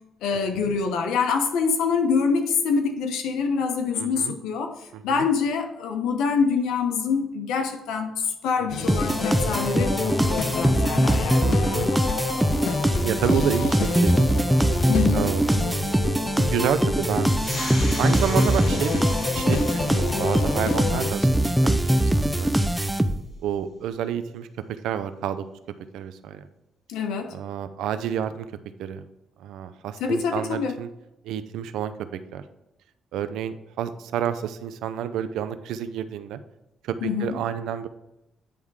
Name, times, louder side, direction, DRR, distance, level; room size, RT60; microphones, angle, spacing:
voice 1, 0.2-4.7 5.0-11.5 14.9-15.3 26.9-27.4 30.0-30.7 37.0-37.3, left 5 dB, 90° left, 6 dB, 1.0 m, -25 dB
voice 2, 3.9-4.3 4.9-5.3 8.6-9.0 11.4-11.8 13.0-14.3 15.1-15.6 16.4-17.3 18.0-19.0 19.3-22.7 23.4-25.4 25.9-26.5 27.3-28.5 28.8-29.0 29.4-30.9 31.2-31.9 32.3-32.4 33.1-36.4 36.8-37.9, right 9 dB, 85° right, 11 dB, 0.5 m, -29 dB
sound 1, 8.7-21.1, left 8 dB, 70° left, 0.4 m, -31 dB
sound 2, 8.9-23.4, right 1 dB, 5° right, 0.5 m, -22 dB
sound 3, 17.2-22.3, left 1 dB, 40° left, 2.3 m, -39 dB
10.0 x 3.6 x 4.8 m, 0.91 s
cardioid pair, 90°, 0 cm